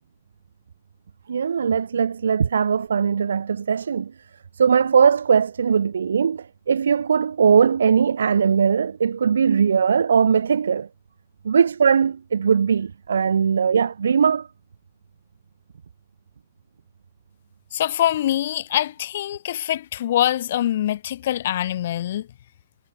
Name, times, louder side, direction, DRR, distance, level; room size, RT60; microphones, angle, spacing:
voice 1, 1.3-4.1 4.6-10.9 11.4-14.5, right 6 dB, 80° right, 0.7 m, -20 dB
voice 2, 17.7-22.3, left 12 dB, 55° left, 0.8 m, -24 dB
hypercardioid pair, 145°, 0 cm